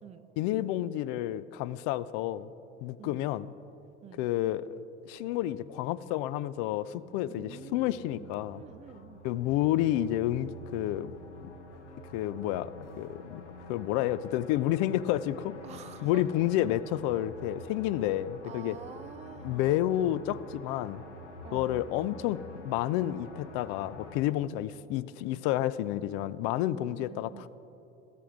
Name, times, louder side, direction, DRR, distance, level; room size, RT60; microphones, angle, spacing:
voice 1, 0.4-2.5 2.8-3.5 4.2-4.8 5.1-8.6 9.2-11.1 12.1-13.4 13.7-15.5 16.0-18.8 19.4-21.0 21.5-27.5, left 13 dB, 50° left, 17 dB, 0.4 m, -30 dB
sound 1, 5.2-24.2, left 1 dB, 80° left, 1.1 m, -48 dB
voice 2, 7.3-9.3 15.6-16.2 18.4-19.9 21.4-22.1 26.7-27.5, right 9 dB, 20° right, 13 dB, 0.3 m, -48 dB
13.5 x 8.3 x 3.7 m, 2.9 s
hypercardioid pair, 70°, 35 cm